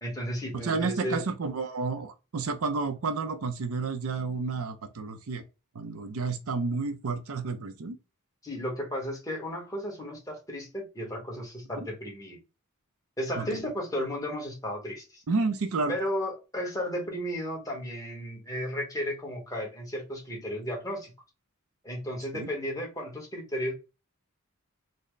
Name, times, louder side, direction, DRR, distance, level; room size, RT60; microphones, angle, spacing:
voice 1, 0.0-1.2 8.4-12.4 13.2-15.2 15.9-21.1 21.8-23.7, equal, 15° left, 1.1 m, -34 dB
voice 2, 0.5-5.4 5.7-8.0 11.8-11.9 13.4-13.5 15.3-16.0 22.3-22.5, right 4 dB, 75° right, 0.5 m, -31 dB
4.0 x 2.0 x 3.2 m
head